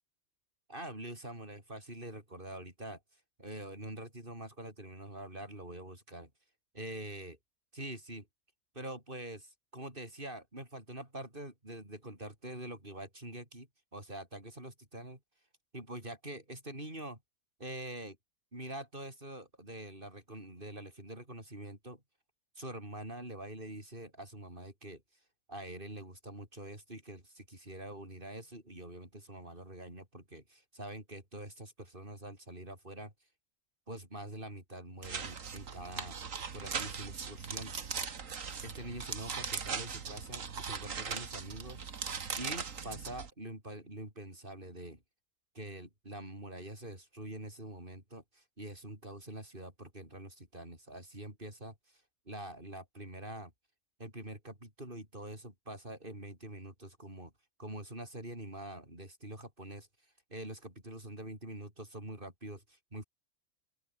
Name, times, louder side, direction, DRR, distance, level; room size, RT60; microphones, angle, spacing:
voice 1, 0.7-3.0 3.4-6.3 6.7-7.4 7.7-8.3 8.7-15.2 15.7-17.2 17.6-18.2 18.5-22.0 22.6-25.0 25.5-33.1 33.9-37.7 38.6-41.8 42.4-45.0 45.5-53.5 54.0-57.3 57.6-59.9 60.3-63.0, right 1 dB, 40° right, 7.7 m, -45 dB
sound 1, 35.0-43.3, right 6 dB, 75° right, 2.1 m, -39 dB
open air
omnidirectional pair, 1.4 m